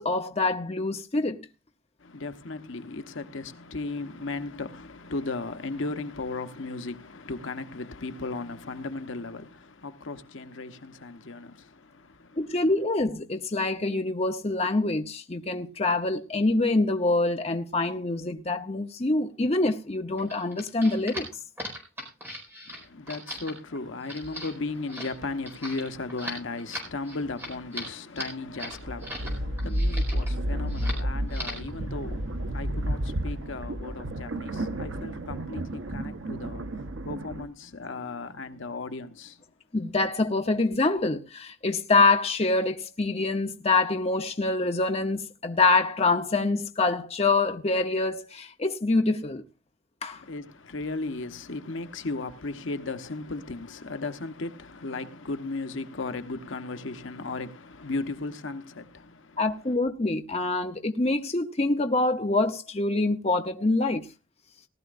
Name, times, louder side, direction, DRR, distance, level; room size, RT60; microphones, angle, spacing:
voice 1, 0.0-1.5 12.4-21.3 39.7-49.4 50.0-50.2 59.4-64.1, left 3 dB, 30° left, 0.8 m, -25 dB
voice 2, 2.0-12.5 22.7-39.4 50.1-59.4, left 3 dB, 75° left, 1.0 m, -36 dB
sound 1, 20.2-29.3 29.6-30.3 30.7-31.0 31.3-31.7, equal, 10° right, 4.6 m, -39 dB
sound 2, 28.6-37.5, right 1 dB, 80° right, 0.9 m, -31 dB
19.0 x 12.5 x 2.5 m
head